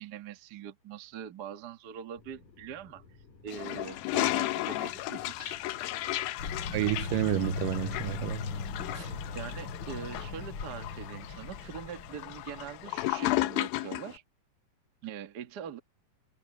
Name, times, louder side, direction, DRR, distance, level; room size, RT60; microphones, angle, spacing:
voice 1, 0.0-3.0 3.4-5.6 9.3-14.2 15.0-15.8, right 8 dB, 50° right, 1.2 m, -43 dB
sound 1, 2.2-9.7, left 4 dB, 60° left, 5.0 m, -56 dB
Toilet flush, 3.5-14.1, left 17 dB, 90° left, 2.6 m, -34 dB
sound 2, 6.4-13.1, left 4 dB, 40° left, 2.9 m, -38 dB
voice 2, 6.7-8.5 8.9-9.2, right 19 dB, 80° right, 2.1 m, -30 dB
omnidirectional pair, 4.0 m